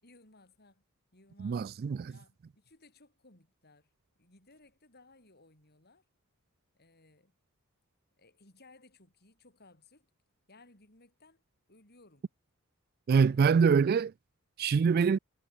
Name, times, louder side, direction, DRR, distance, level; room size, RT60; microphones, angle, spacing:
voice 1, 0.0-0.8 1.1-1.7 2.1-3.9 4.2-6.0 6.7-7.3 8.2-10.1 10.5-11.4 11.7-12.3 13.3-13.7, left 2 dB, 45° left, 6.9 m, -61 dB
voice 2, 1.4-2.1 13.1-14.1 14.6-15.2, right 6 dB, 45° right, 0.3 m, -24 dB
head